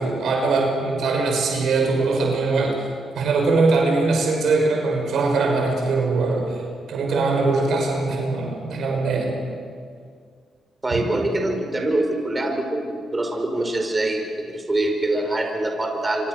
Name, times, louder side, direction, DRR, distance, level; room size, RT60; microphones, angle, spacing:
voice 1, 0.0-2.8 3.1-6.6 6.9-9.4, right 3 dB, 70° right, 1 dB, 6.2 m, -21 dB
voice 2, 10.8-16.3, right 1 dB, 25° right, 3 dB, 5.2 m, -24 dB
26.0 x 26.0 x 6.6 m, 2.1 s
supercardioid pair, 50°, 0 cm